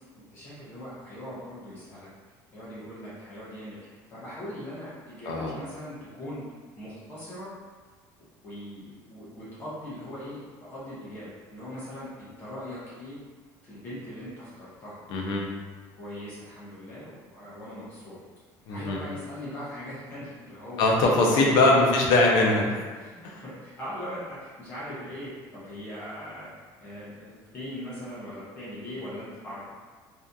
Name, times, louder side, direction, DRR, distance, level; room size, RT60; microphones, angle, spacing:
voice 1, 0.3-2.1 2.5-6.4 6.8-7.5 8.4-13.2 13.6-15.0 16.0-18.2 18.7-20.9 21.3-22.1 23.0-29.6, equal, 25° left, -10 dB, 0.7 m, -40 dB
voice 2, 15.1-15.5 18.7-19.0 20.8-22.7 23.2-23.4, left 2 dB, 55° left, -1 dB, 0.5 m, -21 dB
2.7 x 2.4 x 2.2 m, 1.4 s
cardioid pair, 175°, 8 cm